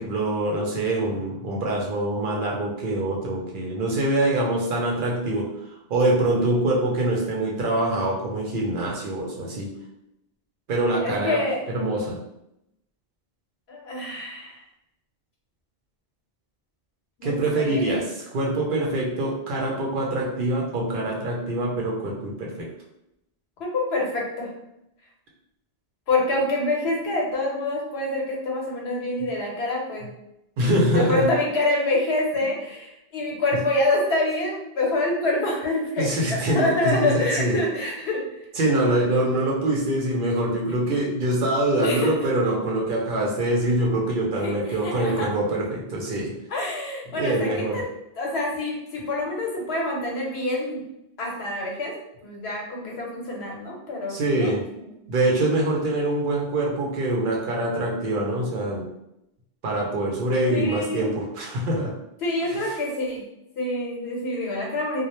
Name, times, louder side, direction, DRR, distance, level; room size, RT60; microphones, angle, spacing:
voice 1, 0.0-5.5 5.9-9.7 10.7-11.4 11.7-12.2 17.2-22.7 30.6-31.3 36.0-37.6 38.6-46.3 47.1-47.8 54.1-54.6 55.1-58.8 59.6-61.9 62.6-62.7, right 1 dB, 60° right, -2 dB, 0.7 m, -24 dB
voice 2, 11.0-11.6 13.7-14.6 17.2-18.0 23.7-24.5 26.1-30.1 30.9-38.2 41.8-42.1 44.4-45.3 46.5-47.8 48.2-50.8 51.2-51.9 52.2-54.5 55.0-55.1 60.5-61.1 62.2-63.2 63.6-65.1, left 2 dB, 80° left, -2 dB, 1.0 m, -26 dB
2.1 x 2.0 x 2.9 m, 0.83 s
omnidirectional pair, 1.1 m